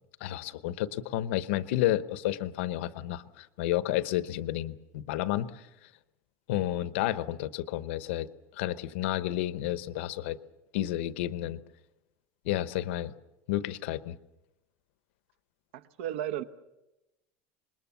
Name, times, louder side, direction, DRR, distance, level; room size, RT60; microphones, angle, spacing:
voice 1, 0.2-5.5 6.5-8.3 8.6-10.4 10.7-11.6 12.4-13.1 13.5-14.2, left 14 dB, 75° left, 14 dB, 1.0 m, -31 dB
voice 2, 15.7-16.4, right 11 dB, 80° right, 11 dB, 1.3 m, -34 dB
26.5 x 21.0 x 7.2 m, 0.96 s
cardioid pair, 180°, 7 cm